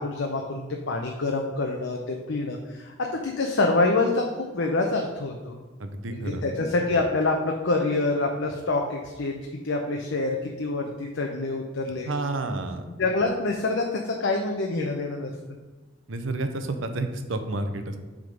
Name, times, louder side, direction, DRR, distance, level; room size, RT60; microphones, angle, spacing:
voice 1, 0.0-5.6 6.1-12.1 13.0-15.3, left 3 dB, 70° left, 1 dB, 0.7 m, -26 dB
voice 2, 5.8-6.5 12.1-12.8 16.1-18.0, right 2 dB, 70° right, 8 dB, 0.7 m, -30 dB
7.7 x 3.7 x 5.2 m, 1.2 s
head